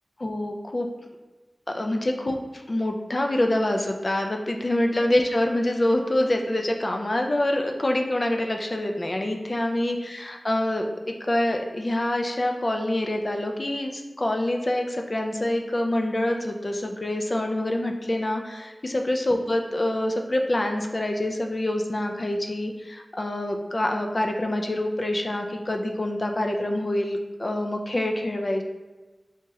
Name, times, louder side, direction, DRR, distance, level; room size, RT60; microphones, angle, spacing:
voice 1, 0.2-0.9 1.7-2.4 2.7-28.6, left 1 dB, 40° left, 3 dB, 0.4 m, -26 dB
3.5 x 2.8 x 3.0 m, 1.2 s
wide cardioid pair, 80°, 0 cm